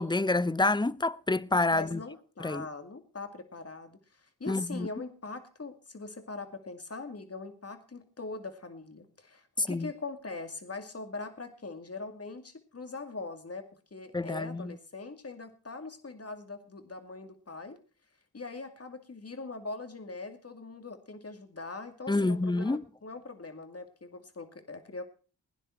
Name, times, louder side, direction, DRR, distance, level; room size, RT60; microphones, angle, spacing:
voice 1, 0.0-2.0 2.4-2.7 4.5-4.9 9.6-9.9 14.1-14.7 22.1-22.8, left 2 dB, 10° left, 0.6 m, -28 dB
voice 2, 1.7-17.8 18.3-25.0, left 3 dB, 40° left, 2.4 m, -42 dB
17.0 x 10.0 x 4.6 m
supercardioid pair, 40°, 38 cm